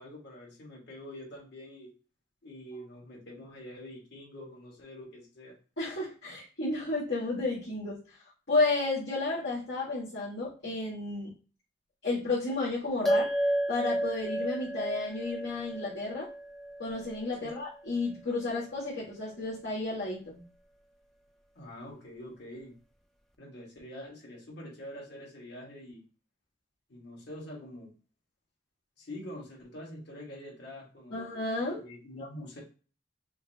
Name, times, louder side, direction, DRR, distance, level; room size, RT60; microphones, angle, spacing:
voice 1, 0.0-1.9 2.4-5.5 17.4-17.5 21.5-22.7 23.4-26.0 26.9-27.9 29.0-31.3 31.8-32.6, left 1 dB, 55° left, -3 dB, 1.7 m, -45 dB
voice 2, 5.8-8.2 8.5-11.3 12.0-13.3 13.7-16.3 16.8-20.4 31.1-31.8, left 3 dB, 75° left, -9 dB, 1.7 m, -32 dB
sound 1, 13.0-17.7, right 1 dB, ahead, 0.3 m, -32 dB
5.7 x 2.1 x 2.8 m, 0.35 s
head